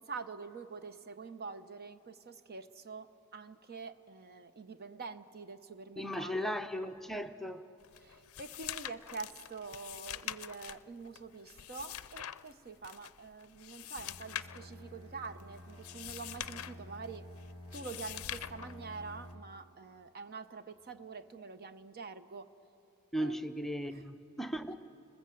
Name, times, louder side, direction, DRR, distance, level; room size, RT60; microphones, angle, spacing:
voice 1, 0.0-6.5 8.0-17.3 17.7-22.5 23.2-23.4 23.8-24.1, right 4 dB, 50° right, 0.8 m, -46 dB
voice 2, 6.0-7.6 23.1-24.7, equal, ahead, 0.6 m, -37 dB
sound 1, 7.8-19.3, left 12 dB, 85° left, 0.5 m, -45 dB
Bowed string instrument, 14.0-19.6, left 1 dB, 80° right, 2.5 m, -51 dB
30.0 x 20.5 x 7.7 m
head